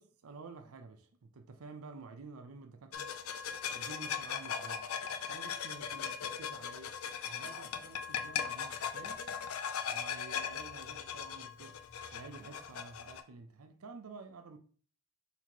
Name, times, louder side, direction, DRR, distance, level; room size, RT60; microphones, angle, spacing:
voice 1, 0.0-3.1 3.7-4.9 5.3-9.2 9.9-11.8 12.1-14.6, right 4 dB, 80° right, 0.5 m, -50 dB
sound 1, 2.9-13.2, left 7 dB, 75° left, 0.5 m, -39 dB
4.1 x 2.9 x 4.3 m
head